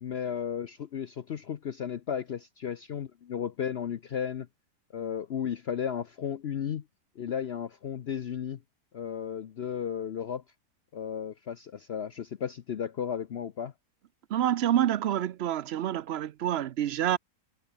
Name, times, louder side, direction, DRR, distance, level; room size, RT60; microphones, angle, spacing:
voice 1, 0.0-4.5 4.9-6.8 7.2-8.6 8.9-10.4 10.9-13.7, left 8 dB, 55° left, 0.9 m, -34 dB
voice 2, 14.3-17.2, right 11 dB, 60° right, 0.7 m, -27 dB
omnidirectional pair, 1.5 m